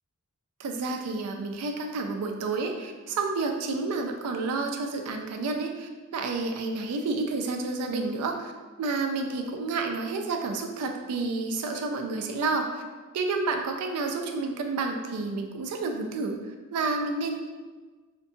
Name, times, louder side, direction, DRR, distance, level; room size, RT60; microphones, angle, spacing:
voice 1, 0.6-8.5 8.8-12.8 13.1-16.4 16.7-17.3, right 3 dB, 90° right, 4 dB, 0.3 m, -30 dB
2.6 x 2.2 x 2.6 m, 1.3 s
head